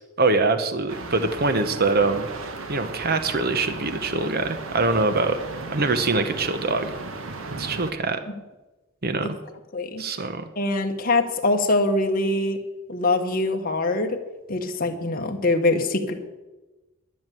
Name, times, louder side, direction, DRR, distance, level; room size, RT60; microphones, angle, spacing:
voice 1, 0.2-2.3 2.7-5.4 5.7-6.9 7.6-8.2 9.0-9.4 10.0-10.5, right 3 dB, 45° right, 9 dB, 0.9 m, -23 dB
sound 1, 0.9-7.9, right 3 dB, 75° right, 1.2 m, -36 dB
voice 2, 9.7-10.0 10.6-12.6 12.9-14.2 14.5-16.2, left 2 dB, 45° left, 4 dB, 1.4 m, -23 dB
11.0 x 10.0 x 7.6 m, 1.1 s
head